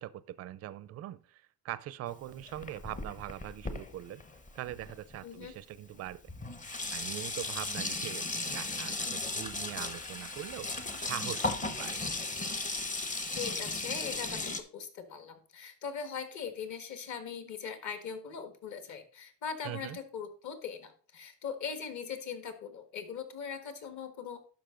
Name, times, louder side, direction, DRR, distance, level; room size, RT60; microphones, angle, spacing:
voice 1, 0.0-4.2 4.5-6.2 6.7-12.0 19.6-20.0, right 13 dB, 40° right, 0.5 m, -42 dB
Sink (filling or washing), 2.1-5.2 6.0-6.1 6.3-14.6, left 2 dB, 20° left, 0.8 m, -36 dB
voice 2, 5.2-5.6 13.3-24.4, left 6 dB, 45° left, 1.6 m, -40 dB
11.5 x 5.3 x 3.7 m
cardioid pair, 145°, 40 cm